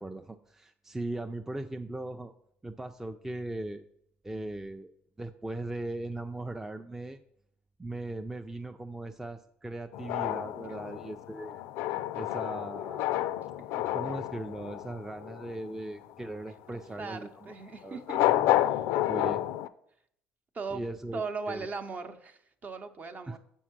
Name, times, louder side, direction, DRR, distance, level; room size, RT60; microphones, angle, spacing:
voice 1, 0.0-2.3 2.6-3.8 4.2-4.9 5.2-7.2 7.8-11.6 12.2-13.1 13.9-17.5 17.8-18.0 19.1-19.4 20.7-21.2 21.5-21.7 23.3-23.4, right 2 dB, 10° right, 6 dB, 0.4 m, -38 dB
sound 1, 9.9-15.7 18.0-19.7, left 14 dB, 80° left, 0.3 m, -30 dB
voice 2, 16.7-18.2 18.6-19.6 20.5-20.9 21.1-23.4, right 4 dB, 40° right, 9 dB, 0.8 m, -39 dB
6.2 x 4.6 x 5.9 m, 0.70 s
supercardioid pair, 85°, 4 cm